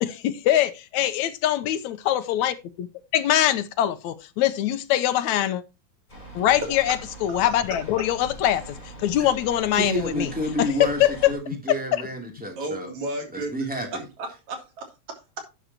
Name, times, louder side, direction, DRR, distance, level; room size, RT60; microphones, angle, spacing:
voice 1, 0.0-2.9 3.1-5.6 6.4-10.3 10.6-11.3 11.7-12.0, left 12 dB, 80° left, 2.1 m, -23 dB
sound 1, 6.1-11.3, right 1 dB, 15° left, 4.6 m, -41 dB
voice 2, 9.7-12.9 13.3-14.0, equal, 5° right, 2.6 m, -30 dB
voice 3, 12.6-13.5 13.9-14.0 14.5-15.4, right 2 dB, 70° right, 4.3 m, -33 dB
12.0 x 8.8 x 2.9 m
omnidirectional pair, 3.4 m